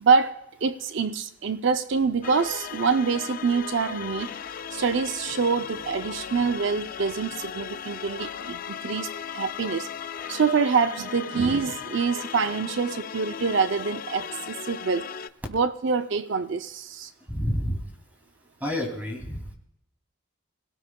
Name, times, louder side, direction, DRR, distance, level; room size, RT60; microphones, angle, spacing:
voice 1, 0.0-0.4 0.6-4.3 4.7-9.9 10.3-15.1 15.5-17.1, right 5 dB, 65° right, 10 dB, 0.5 m, -25 dB
sound 1, 2.2-15.3, left 8 dB, 45° left, 0.4 m, -37 dB
voice 2, 17.3-17.8 18.6-19.5, equal, 10° right, 2 dB, 2.5 m, -29 dB
26.5 x 17.5 x 2.2 m, 0.79 s
head